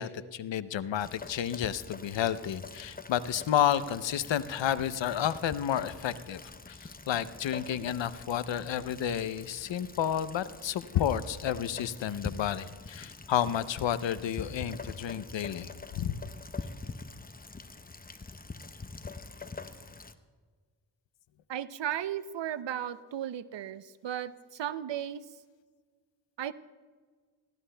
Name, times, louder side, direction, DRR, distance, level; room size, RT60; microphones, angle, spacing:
voice 1, 0.0-6.4 6.7-16.2, left 10 dB, 80° left, 15 dB, 0.6 m, -31 dB
Rain, 1.0-20.2, left 4 dB, 20° left, 0.7 m, -45 dB
voice 2, 21.5-25.3 26.4-26.5, right 10 dB, 75° right, 15 dB, 0.6 m, -35 dB
20.0 x 15.0 x 2.2 m, 1.5 s
cardioid pair, 45°, 44 cm